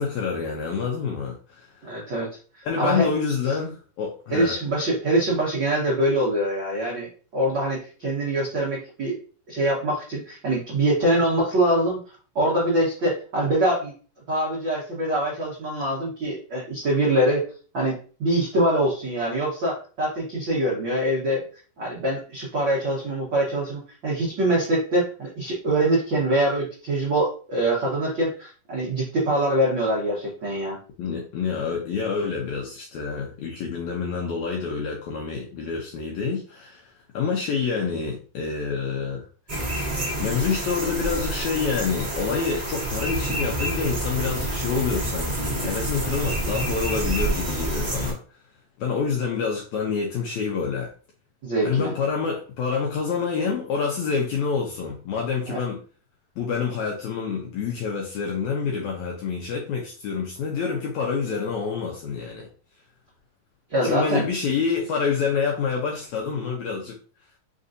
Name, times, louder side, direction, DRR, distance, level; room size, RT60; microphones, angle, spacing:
voice 1, 0.0-1.7 2.7-4.6 31.0-39.3 40.2-48.2 48.8-50.9 51.6-55.8 56.4-62.5 63.8-67.0, left 5 dB, 80° left, 0 dB, 1.7 m, -27 dB
voice 2, 1.8-3.1 4.3-9.2 9.5-13.9 14.3-17.4 17.7-21.5 21.8-30.8 51.4-51.9 55.5-55.6 63.7-64.3, right 1 dB, 75° right, -6 dB, 1.0 m, -24 dB
sound 1, 39.5-48.1, right 1 dB, 60° right, 0.4 m, -28 dB
5.1 x 2.6 x 2.5 m, 0.39 s
omnidirectional pair, 4.0 m